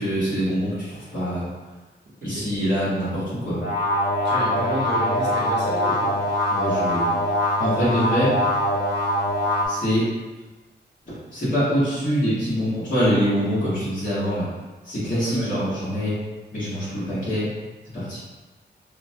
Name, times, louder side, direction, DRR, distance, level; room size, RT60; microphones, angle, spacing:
voice 1, 0.0-1.5 2.2-3.6 6.5-7.1 7.6-8.4 9.7-10.1 11.3-14.5 14.8-16.2 16.5-17.5 17.9-18.2, equal, 45° left, -14 dB, 1.4 m, -24 dB
sound 1, 3.6-9.7, left 1 dB, 75° left, 0.6 m, -23 dB
voice 2, 4.2-6.1 15.2-15.5, equal, 70° right, -4 dB, 0.8 m, -30 dB
2.9 x 2.2 x 2.7 m, 1.2 s
wide cardioid pair, 125°, 19 cm